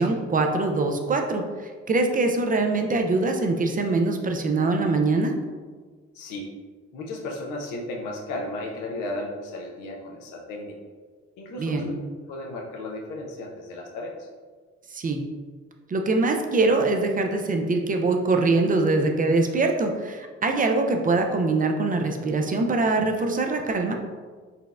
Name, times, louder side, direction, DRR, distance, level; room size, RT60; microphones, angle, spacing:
voice 1, 0.0-5.3 11.6-11.9 14.9-15.2 15.9-23.9, right 3 dB, 30° right, 4 dB, 0.4 m, -23 dB
voice 2, 6.1-6.5 6.9-10.7 11.4-11.9 12.3-14.1, left 2 dB, 85° left, 0 dB, 0.6 m, -34 dB
4.0 x 2.1 x 2.4 m, 1.5 s
supercardioid pair, 60°, 30 cm